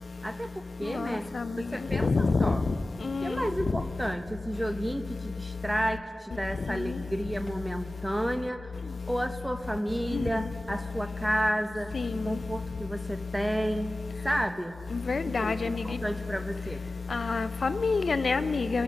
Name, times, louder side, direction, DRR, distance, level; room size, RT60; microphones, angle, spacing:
voice 1, 0.2-1.3 1.6-2.6 3.2-8.7 9.1-11.9 12.2-13.9 14.2-14.8 15.2-16.9, equal, 10° right, 9 dB, 0.6 m, -31 dB
voice 2, 2.0-2.5 3.1-3.4 10.1-10.3 11.9-12.1 15.1-15.7 17.1-18.8, left 4 dB, 75° left, 12 dB, 0.4 m, -27 dB
20.5 x 7.2 x 5.2 m, 2.8 s
wide cardioid pair, 90°, 0 cm